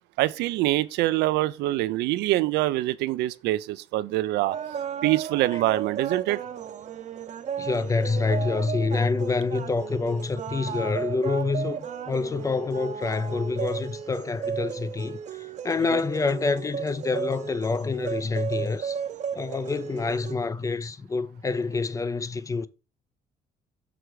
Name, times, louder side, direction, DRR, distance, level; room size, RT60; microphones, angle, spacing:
voice 1, 0.2-4.6 5.0-6.4 15.9-16.0, right 17 dB, 85° right, 0.4 m, -25 dB
sound 1, 4.5-20.3, right 8 dB, 45° right, 0.6 m, -34 dB
voice 2, 7.6-19.0 19.3-22.7, left 4 dB, 20° left, 0.4 m, -27 dB
6.2 x 3.3 x 4.7 m
cardioid pair, 110°, 17 cm